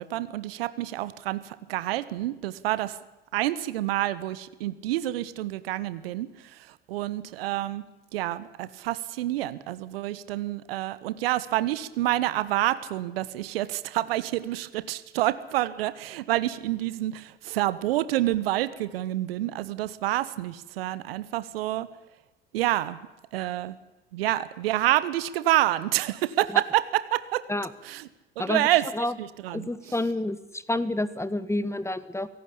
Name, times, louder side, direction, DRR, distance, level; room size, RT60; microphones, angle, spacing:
voice 1, 0.0-2.9 3.3-6.3 6.9-7.8 8.1-21.9 22.5-23.0 23.3-23.8 24.1-27.4 27.8-28.1 28.4-28.8 29.2-29.7, right 15 dB, 75° right, 15 dB, 1.2 m, -28 dB
voice 2, 29.5-32.3, left 1 dB, 10° left, 15 dB, 1.5 m, -29 dB
24.0 x 17.5 x 8.5 m, 1.0 s
figure-of-eight pair, 60°, 30 cm